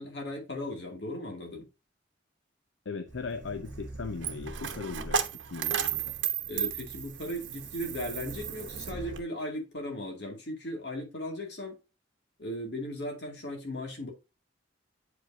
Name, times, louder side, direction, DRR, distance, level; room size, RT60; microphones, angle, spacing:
voice 1, 0.0-1.7 6.5-11.7 12.4-14.1, left 1 dB, 65° left, 2.2 m, -37 dB
voice 2, 2.9-5.2 5.5-6.1, left 4 dB, 80° left, 0.6 m, -38 dB
Coin (dropping), 3.1-9.2, right 7 dB, 80° right, 0.9 m, -34 dB
7.8 x 5.2 x 2.6 m
head